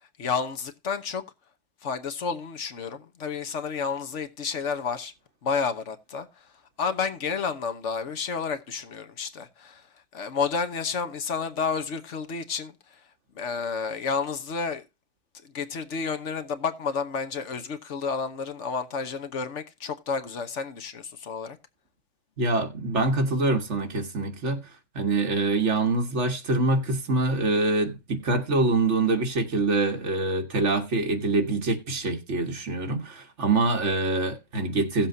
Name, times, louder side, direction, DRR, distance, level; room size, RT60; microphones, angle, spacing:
voice 1, 0.2-1.2 1.8-5.1 5.4-6.5 6.8-9.8 10.1-13.0 13.3-14.9 15.4-21.6, left 5 dB, 70° left, 1.4 m, -30 dB
voice 2, 22.4-24.6 25.0-35.1, right 2 dB, 70° right, 1.8 m, -25 dB
17.0 x 7.3 x 2.7 m
omnidirectional pair, 1.3 m